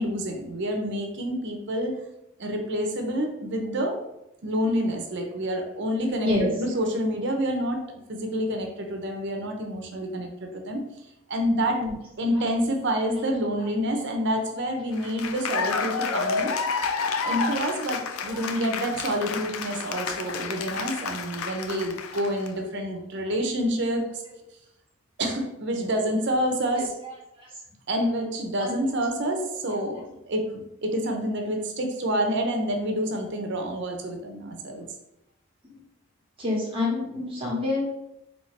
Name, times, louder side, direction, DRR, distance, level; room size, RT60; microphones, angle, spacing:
voice 1, 0.0-2.0 2.4-4.0 4.4-10.9 11.3-11.9 12.2-16.6 17.2-24.2 25.2-27.0 27.9-34.9, equal, 55° right, 4 dB, 0.6 m, -28 dB
voice 2, 6.1-6.5 11.7-11.9 18.3-18.4 21.5-21.6 26.8-27.5 28.6-28.8 36.4-37.8, left 2 dB, 25° right, -5 dB, 1.3 m, -28 dB
Cheering / Applause, 14.9-22.5, left 5 dB, 80° left, 0.4 m, -30 dB
4.4 x 2.8 x 3.2 m, 0.85 s
head